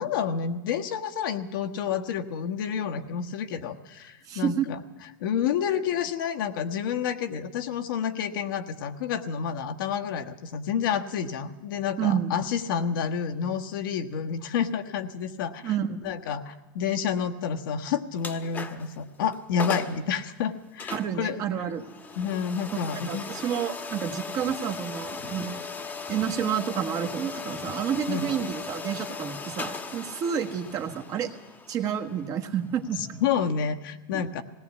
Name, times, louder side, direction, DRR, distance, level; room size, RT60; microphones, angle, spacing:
voice 1, 0.0-4.8 5.2-15.7 16.0-21.4 22.2-23.2 28.1-28.3 33.0-34.4, left 7 dB, 70° left, 6 dB, 1.4 m, -29 dB
voice 2, 4.2-4.7 12.0-12.4 15.6-16.1 20.9-21.9 22.7-25.7 26.1-31.3 31.7-33.2 34.1-34.2, right 8 dB, 30° right, 4 dB, 1.4 m, -30 dB
sound 1, 18.2-18.9 19.3-19.4 19.6-20.0 20.8-33.5, left 4 dB, 15° left, 1.2 m, -38 dB
19.0 x 17.5 x 8.4 m, 1.2 s
supercardioid pair, 155°, 11 cm